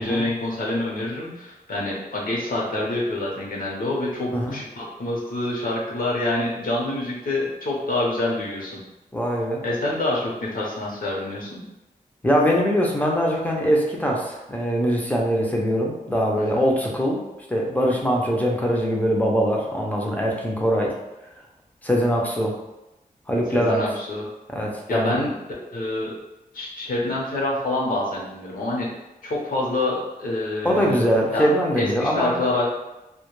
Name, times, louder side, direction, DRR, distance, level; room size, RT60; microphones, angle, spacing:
voice 1, 0.0-8.8 9.6-11.6 16.4-16.7 23.5-24.3 24.9-25.3 25.7-26.1 26.5-28.9 29.2-31.5 31.8-32.7, left 2 dB, 70° left, -4 dB, 0.7 m, -26 dB
voice 2, 9.1-9.6 12.2-17.2 17.5-21.0 21.8-22.5 23.3-23.8 24.5-25.2 30.6-32.4, equal, 10° left, -2 dB, 0.5 m, -22 dB
2.1 x 2.1 x 3.0 m, 0.97 s
wide cardioid pair, 125°, 15 cm